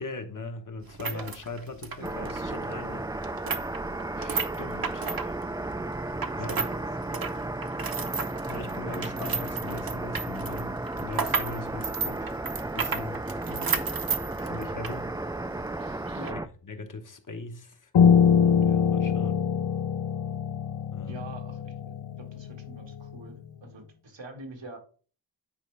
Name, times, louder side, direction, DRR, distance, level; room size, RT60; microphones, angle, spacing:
voice 1, 0.0-3.1 4.2-5.3 6.4-6.6 8.5-10.7 11.0-12.4 12.7-13.2 14.4-15.1 15.5-15.6 16.3-16.4 16.7-17.9 18.4-19.4 20.9-21.2, left 3 dB, 45° left, 1.1 m, -40 dB
sound 1, 0.8-6.8 7.0-15.0 15.3-15.4 16.1-16.3, right 5 dB, 55° right, 0.9 m, -33 dB
sound 2, 2.0-16.5, right 2 dB, 10° right, 0.3 m, -34 dB
voice 2, 6.3-7.7 13.4-13.8 16.1-16.4 21.0-24.8, right 2 dB, 85° right, 1.8 m, -45 dB
Piano, 17.9-23.2, left 7 dB, 85° left, 0.6 m, -24 dB
9.3 x 4.4 x 3.3 m
wide cardioid pair, 80°, 43 cm